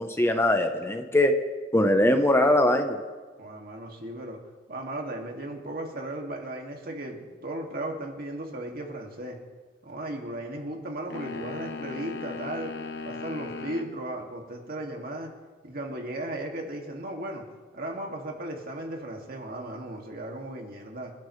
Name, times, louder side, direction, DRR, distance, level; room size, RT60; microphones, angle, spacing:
voice 1, 0.0-1.3 1.7-3.0, left 1 dB, 15° left, 6 dB, 0.9 m, -21 dB
voice 2, 3.4-4.4 4.7-9.4 9.8-12.7 13.0-15.3 15.6-17.4 17.7-21.1, right 1 dB, 55° right, 1 dB, 2.3 m, -36 dB
sound 1, 11.1-13.9, left 4 dB, 65° left, 1.0 m, -37 dB
26.5 x 12.5 x 3.3 m, 1.4 s
head